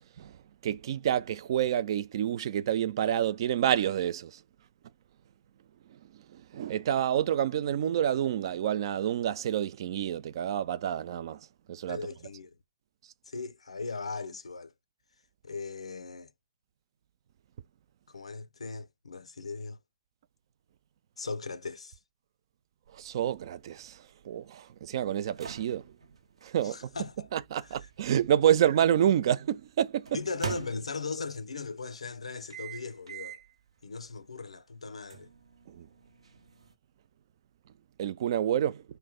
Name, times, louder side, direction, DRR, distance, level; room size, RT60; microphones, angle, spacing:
voice 1, 0.6-4.4 6.1-11.4 11.7-12.0 22.9-25.9 26.4-26.9 27.3-30.2 35.7-35.9 38.0-38.8, right 10 dB, 50° right, 0.4 m, -28 dB
voice 2, 11.9-12.5 13.3-14.7 15.4-16.3 18.1-19.8 21.2-22.0 26.6-27.3 30.1-33.4 33.8-35.3, left 4 dB, 80° left, 0.4 m, -38 dB
sound 1, 22.9-29.0 30.1-31.4 32.5-33.5 34.0-34.2 35.1-36.7, right 6 dB, 70° right, 0.8 m, -44 dB
3.0 x 2.2 x 3.6 m
figure-of-eight pair, 125°, 3 cm